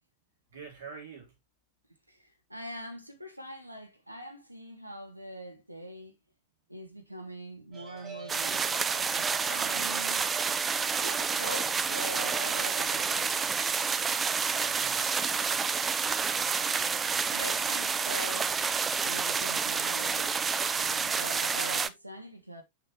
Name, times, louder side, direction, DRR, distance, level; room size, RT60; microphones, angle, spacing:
voice 1, 0.5-1.4 14.5-15.9 16.4-16.6, right 5 dB, 65° right, 4.2 m, -47 dB
voice 2, 2.1-6.1 6.7-10.2 10.8-13.3 17.3-18.6 19.0-22.6, right 1 dB, 85° right, 1.3 m, -43 dB
sound 1, 7.7-13.3, right 4 dB, 35° right, 4.3 m, -47 dB
sound 2, 8.3-21.9, right 5 dB, 20° right, 0.5 m, -29 dB
6.7 x 6.4 x 2.9 m
figure-of-eight pair, 90°, 0 cm